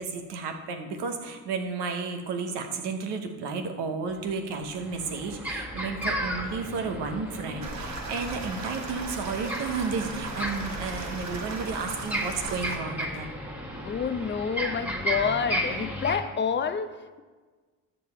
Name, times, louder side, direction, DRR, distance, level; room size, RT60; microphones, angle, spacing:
voice 1, 0.0-13.3, right 4 dB, 75° right, 5 dB, 1.0 m, -32 dB
sound 1, 4.6-16.2, equal, 5° right, 1.6 m, -34 dB
sound 2, 7.6-12.8, right 3 dB, 40° right, 1.3 m, -38 dB
voice 2, 13.8-17.2, left 6 dB, 25° left, 9 dB, 0.6 m, -28 dB
6.6 x 6.5 x 4.4 m, 1.3 s
supercardioid pair, 60°, 42 cm